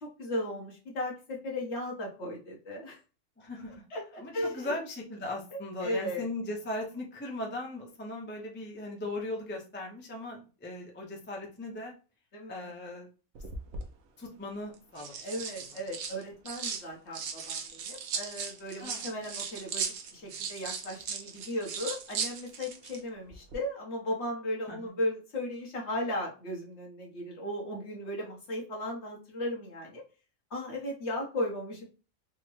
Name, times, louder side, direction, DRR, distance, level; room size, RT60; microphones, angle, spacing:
voice 1, 0.0-3.0 3.9-4.8 5.5-6.3 12.3-12.7 15.1-30.0 30.5-31.8, left 1 dB, 55° left, -1 dB, 1.3 m, -36 dB
voice 2, 3.4-3.8 4.2-11.9 12.5-13.1 14.2-15.1 18.8-19.1 24.7-24.8, left 2 dB, 15° left, -1 dB, 0.4 m, -38 dB
sound 1, 13.3-13.9 14.7-16.8 17.1-23.0 23.3-23.5, right 6 dB, 65° right, 0.8 m, -37 dB
3.5 x 2.1 x 3.1 m, 0.34 s
omnidirectional pair, 1.4 m